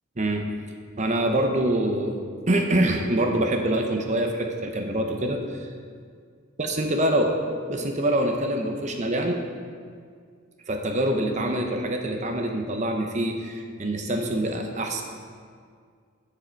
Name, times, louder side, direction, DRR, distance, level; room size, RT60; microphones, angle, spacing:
voice 1, 1.0-2.1 2.5-5.7 6.6-7.3 7.7-9.4 10.7-15.0, right 1 dB, 35° right, 3 dB, 0.7 m, -25 dB
14.0 x 5.0 x 4.5 m, 2.1 s
head